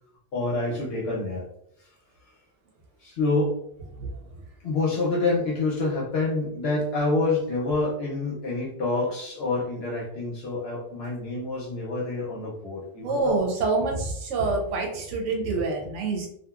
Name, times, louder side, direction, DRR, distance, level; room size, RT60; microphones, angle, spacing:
voice 1, 0.3-1.5 1.8-1.9 3.0-3.6 4.6-13.4, left 2 dB, 65° left, -4 dB, 0.8 m, -27 dB
voice 2, 13.0-16.3, right 3 dB, 90° right, 1 dB, 0.9 m, -26 dB
2.9 x 2.3 x 2.3 m, 0.71 s
omnidirectional pair, 1.2 m